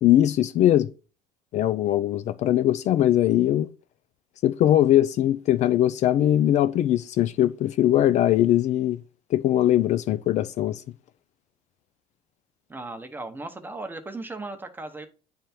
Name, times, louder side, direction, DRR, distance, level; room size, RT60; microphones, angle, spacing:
voice 1, 0.0-0.9 1.5-3.7 4.4-9.0 9.3-10.8, left 12 dB, 50° left, 0.4 m, -21 dB
voice 2, 12.7-15.1, right 2 dB, 15° right, 0.9 m, -36 dB
8.9 x 3.5 x 4.3 m
cardioid pair, 110°, 15 cm